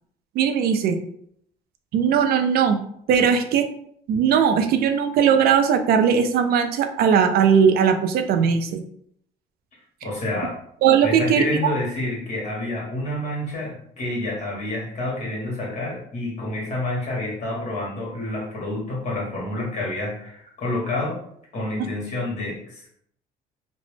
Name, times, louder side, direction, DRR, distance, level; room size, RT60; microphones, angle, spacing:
voice 1, 0.4-1.0 1.9-2.8 3.1-3.7 4.1-8.8 10.8-11.4, right 7 dB, 65° right, 7 dB, 0.4 m, -19 dB
voice 2, 10.0-10.6 11.0-21.2 21.5-22.9, left 1 dB, 45° left, -3 dB, 1.4 m, -28 dB
2.9 x 2.0 x 3.1 m, 0.67 s
cardioid pair, 110°, 17 cm